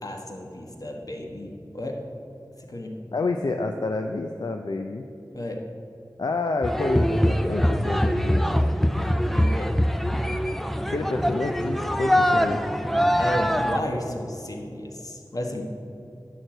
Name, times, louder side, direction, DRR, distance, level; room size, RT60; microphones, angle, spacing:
voice 1, 0.0-2.0 2.7-2.9 5.3-5.6 9.3-9.7 13.2-15.6, left 1 dB, 60° left, 1 dB, 1.4 m, -32 dB
voice 2, 3.1-5.1 6.2-8.8 10.9-12.6, left 3 dB, 80° left, 4 dB, 0.5 m, -28 dB
sound 1, 6.6-13.8, equal, 5° left, 0.5 m, -23 dB
11.0 x 4.8 x 7.8 m, 2.7 s
wide cardioid pair, 65°, 7 cm